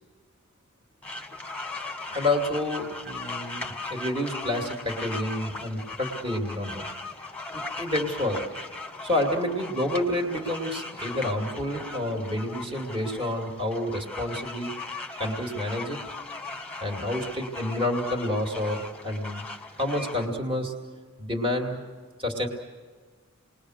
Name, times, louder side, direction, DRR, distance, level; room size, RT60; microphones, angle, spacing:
sound 1, 1.0-20.2, left 3 dB, 5° left, 1.7 m, -38 dB
voice 1, 2.0-6.9 7.5-8.5 9.0-14.7 15.2-16.0 16.8-19.4 19.8-20.7 21.2-21.8 22.2-22.5, left 1 dB, 25° right, 2 dB, 2.6 m, -29 dB
30.0 x 21.0 x 6.5 m, 1.5 s
head